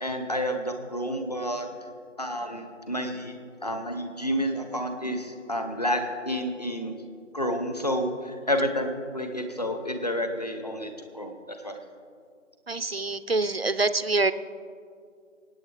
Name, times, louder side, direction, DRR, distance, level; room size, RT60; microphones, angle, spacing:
voice 1, 0.0-1.7 2.2-3.3 3.6-6.9 7.3-11.8, equal, 30° left, 6 dB, 0.9 m, -30 dB
voice 2, 12.7-14.3, right 3 dB, 50° right, 13 dB, 0.6 m, -25 dB
26.0 x 9.0 x 3.4 m, 2.2 s
figure-of-eight pair, 170°, 39 cm